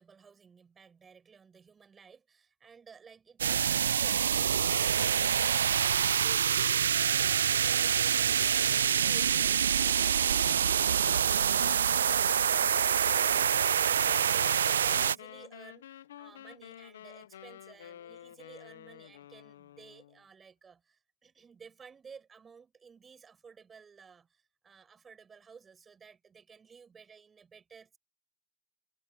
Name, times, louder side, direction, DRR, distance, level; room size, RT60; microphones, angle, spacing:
voice 1, 0.0-28.0, right 6 dB, 20° right, 6.3 m, -55 dB
sound 1, 3.4-15.1, right 8 dB, 90° right, 0.3 m, -26 dB
sound 2, 13.0-20.2, left 11 dB, 80° left, 1.0 m, -50 dB
hypercardioid pair, 105°, 0 cm